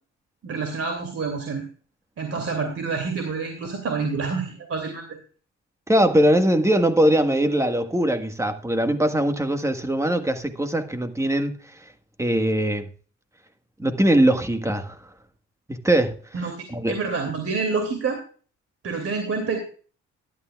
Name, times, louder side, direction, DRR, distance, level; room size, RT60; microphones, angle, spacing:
voice 1, 0.4-1.6 2.2-5.2 16.3-18.2 18.8-19.6, right 4 dB, 50° right, 2.7 m, -28 dB
voice 2, 5.9-11.6 12.2-12.9 13.8-15.0 15.7-16.2 16.7-17.0, right 1 dB, 10° right, 1.5 m, -21 dB
12.5 x 12.0 x 2.4 m
cardioid pair, 90°, 30 cm